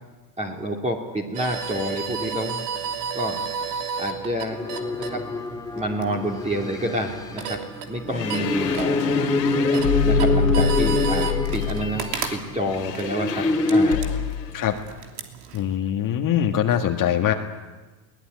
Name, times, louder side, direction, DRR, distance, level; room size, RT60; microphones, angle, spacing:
voice 1, 0.4-2.7 3.1-3.4 4.0-4.7 5.0-5.2 5.7-9.1 10.0-14.0, right 1 dB, 15° right, 0 dB, 2.7 m, -29 dB
sound 1, 1.3-15.8, right 6 dB, 75° right, 3.1 m, -34 dB
sound 2, 4.5-12.4 13.0-14.0, left 2 dB, 10° left, 1.8 m, -25 dB
sound 3, 8.1-14.5, left 7 dB, 90° left, 3.4 m, -26 dB
voice 2, 15.5-17.3, left 10 dB, 40° left, 3 dB, 1.9 m, -22 dB
22.5 x 18.5 x 9.7 m, 1.2 s
hypercardioid pair, 105°, 48 cm